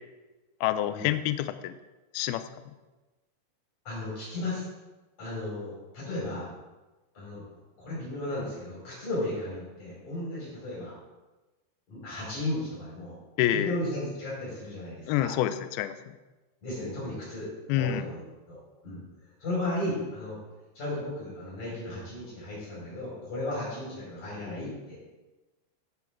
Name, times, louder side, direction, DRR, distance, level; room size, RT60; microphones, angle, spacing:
voice 1, 0.6-1.7 2.1-2.4 13.4-13.8 15.1-16.0 17.7-18.0, left 12 dB, 90° left, 11 dB, 2.1 m, -27 dB
voice 2, 3.8-4.7 5.2-6.5 7.1-7.4 7.8-10.9 11.9-13.2 13.5-15.3 16.6-18.6 18.8-19.0 19.4-20.4 20.7-25.0, left 1 dB, 45° left, -9 dB, 5.7 m, -35 dB
15.0 x 7.8 x 3.6 m, 1.1 s
omnidirectional pair, 5.0 m